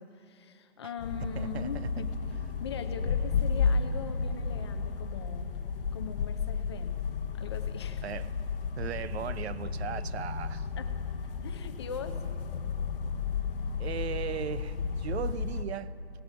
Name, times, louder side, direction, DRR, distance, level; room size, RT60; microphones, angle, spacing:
voice 1, 0.0-2.1 2.6-5.5 5.9-7.0 7.3-8.0 10.8-10.9 11.4-12.2, left 6 dB, 25° left, 0.5 m, -41 dB
sound 1, 1.0-15.6, left 5 dB, 60° left, 0.9 m, -33 dB
voice 2, 1.2-1.9 8.0-8.3 8.8-10.7 13.8-15.9, right 9 dB, 75° right, 0.6 m, -37 dB
17.0 x 12.5 x 5.5 m
hypercardioid pair, 155°, 32 cm